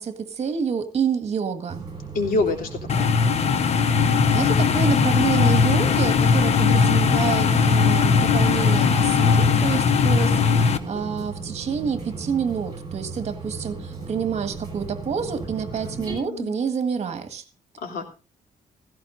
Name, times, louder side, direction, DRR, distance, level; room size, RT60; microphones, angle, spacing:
voice 1, 0.0-1.8 4.0-4.1 4.3-17.4, right 6 dB, 50° right, 1.8 m, -28 dB
sound 1, 1.7-16.1, right 4 dB, 30° right, 6.2 m, -36 dB
voice 2, 2.1-3.1 10.9-11.3 15.8-16.6 17.8-18.1, left 3 dB, 90° left, 3.3 m, -28 dB
sound 2, 2.9-10.8, left 5 dB, 50° left, 0.9 m, -19 dB
16.5 x 16.0 x 2.6 m
wide cardioid pair, 155°, 14 cm